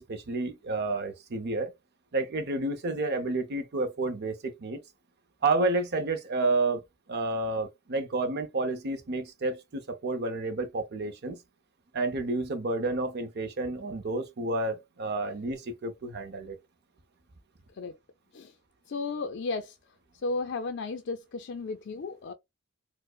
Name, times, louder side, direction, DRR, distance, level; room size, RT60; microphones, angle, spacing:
voice 1, 0.0-1.7 2.1-4.8 5.4-6.8 7.1-11.4 11.9-16.6, right 2 dB, 55° right, 0.6 m, -30 dB
voice 2, 18.9-19.8 20.2-22.3, left 3 dB, 60° left, 0.4 m, -34 dB
4.5 x 2.0 x 2.3 m
head